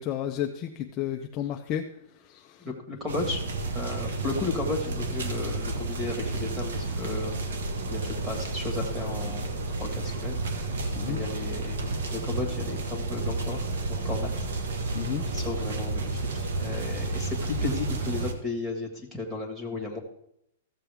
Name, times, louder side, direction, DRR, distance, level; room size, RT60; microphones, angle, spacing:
voice 1, 0.0-1.9 2.3-2.6 11.0-11.2 14.9-15.2, left 10 dB, 25° left, 3 dB, 0.5 m, -32 dB
voice 2, 2.6-3.4 3.7-7.6 7.9-10.7 11.1-14.3 14.7-14.9 15.3-20.0, left 3 dB, 5° right, 1 dB, 1.8 m, -34 dB
sound 1, 3.1-18.3, right 2 dB, 85° right, 1.4 m, -31 dB
14.5 x 7.5 x 3.5 m, 0.74 s
hypercardioid pair, 165°, 0 cm